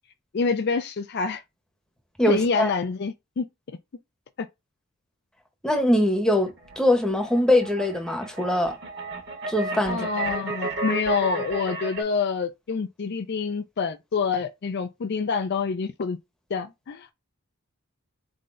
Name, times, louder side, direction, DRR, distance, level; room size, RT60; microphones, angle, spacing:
voice 1, 0.3-1.4 2.3-3.5 9.9-16.2 16.5-17.1, left 5 dB, 50° left, 0.4 m, -27 dB
voice 2, 2.2-2.7 5.6-8.8 9.5-10.1, left 1 dB, 5° left, 0.9 m, -22 dB
sound 1, 6.4-12.0, right 2 dB, 50° right, 1.2 m, -33 dB
4.3 x 3.8 x 2.5 m
head